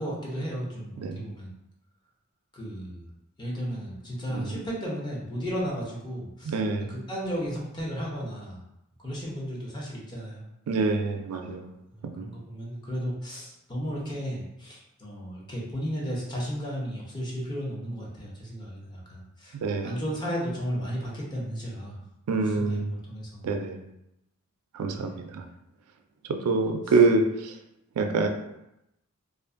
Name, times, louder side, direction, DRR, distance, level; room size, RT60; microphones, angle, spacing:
voice 1, 0.0-1.5 2.5-3.1 3.4-6.6 6.9-8.6 9.0-10.4 11.4-11.6 11.9-19.6 19.8-22.0 22.4-23.5 25.0-25.1 26.9-27.0, equal, 20° left, -5 dB, 0.6 m, -34 dB
voice 2, 1.0-1.3 4.3-4.6 6.4-6.9 10.7-11.7 12.2-12.3 19.6-20.0 22.3-22.9 23.4-23.9 24.7-25.4 26.3-27.5 28.0-28.3, right 3 dB, 80° right, 5 dB, 0.3 m, -26 dB
2.5 x 2.4 x 2.4 m, 0.86 s
head